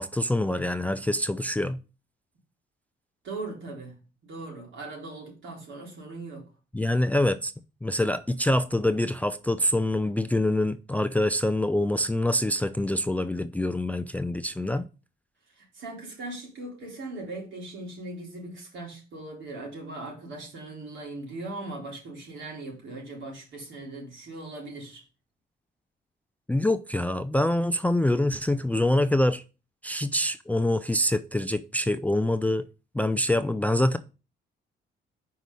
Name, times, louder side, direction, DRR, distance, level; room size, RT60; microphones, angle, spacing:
voice 1, 0.0-1.8 6.7-7.5 7.8-14.9 26.5-29.4 29.8-32.7 32.9-34.0, left 1 dB, 5° left, 0.4 m, -25 dB
voice 2, 3.2-4.0 4.2-6.5 15.6-25.0, right 2 dB, 70° right, 4.0 m, -39 dB
5.1 x 4.8 x 5.5 m
cardioid pair, 90°, 20 cm